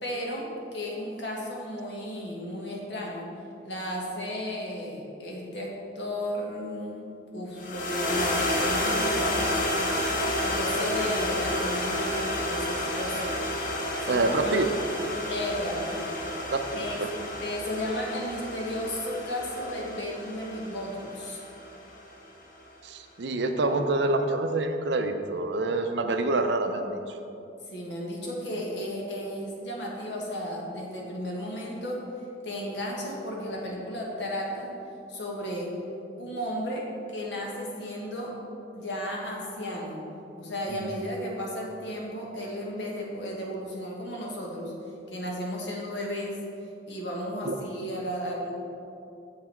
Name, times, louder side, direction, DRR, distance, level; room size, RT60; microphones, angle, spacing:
voice 1, 0.0-0.5 0.7-3.3 3.6-7.0 7.3-9.8 10.3-13.3 14.0-14.7 15.3-16.1 16.7-17.0 17.4-21.4 27.7-32.0 32.4-34.7 35.1-35.7 36.2-38.3 38.7-40.0 40.4-44.7 45.1-46.4 46.9-48.5, equal, 85° left, -2 dB, 1.5 m, -34 dB
sound 1, 7.6-22.0, left 1 dB, 50° left, 0.9 m, -30 dB
voice 2, 14.1-14.7 16.5-16.8 22.8-27.2 40.8-40.9 47.5-47.6, right 2 dB, 75° right, 7 dB, 0.6 m, -26 dB
7.2 x 5.9 x 4.4 m, 2.6 s
head